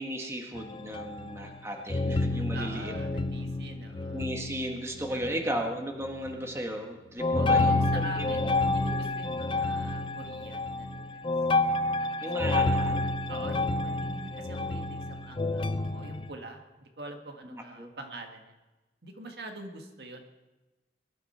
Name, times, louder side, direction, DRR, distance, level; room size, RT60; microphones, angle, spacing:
voice 1, 0.0-3.2 4.1-8.5 12.2-13.1 17.4-17.9, equal, 15° right, 2 dB, 1.5 m, -35 dB
sound 1, 0.6-1.6 1.9-5.7 6.0-6.6 7.2-16.3, left 2 dB, 30° left, 0.5 m, -29 dB
voice 2, 2.5-4.2 5.1-5.6 7.3-11.3 12.5-12.9 13.3-18.5 19.0-20.2, right 2 dB, 65° right, 4 dB, 1.7 m, -44 dB
21.5 x 12.0 x 4.3 m, 1.1 s
head